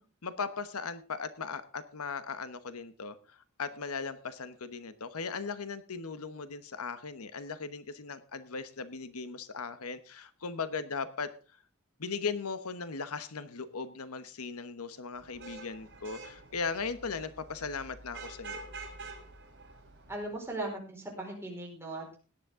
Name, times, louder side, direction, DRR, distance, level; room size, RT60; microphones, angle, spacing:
voice 1, 0.2-11.3 12.0-18.7, left 5 dB, 85° left, 12 dB, 1.1 m, -38 dB
Vehicle horn car horn honking / Traffic noise roadway noise, 15.2-20.4, right 3 dB, 55° right, 3.7 m, -47 dB
voice 2, 20.1-22.2, right 2 dB, 10° right, -1 dB, 4.8 m, -38 dB
17.5 x 10.5 x 3.7 m, 0.36 s
head